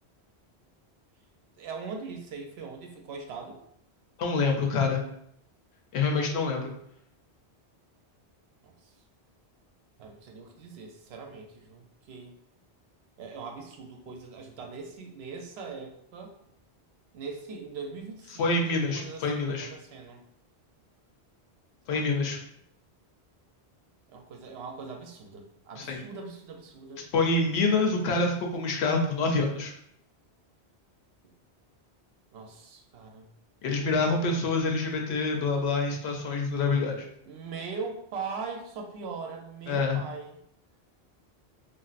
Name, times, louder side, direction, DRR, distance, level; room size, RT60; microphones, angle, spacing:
voice 1, 1.6-3.6 8.6-8.9 10.0-12.3 13.2-16.3 17.1-20.2 21.9-22.1 24.1-27.1 32.3-33.3 37.2-40.4, right 4 dB, 75° right, 3 dB, 0.8 m, -41 dB
voice 2, 4.2-5.0 5.9-6.7 18.4-19.7 21.9-22.4 25.8-26.0 27.1-29.7 33.6-37.1 39.7-40.0, left 3 dB, 75° left, 2 dB, 0.9 m, -26 dB
3.2 x 2.5 x 2.4 m, 0.72 s
omnidirectional pair, 1.1 m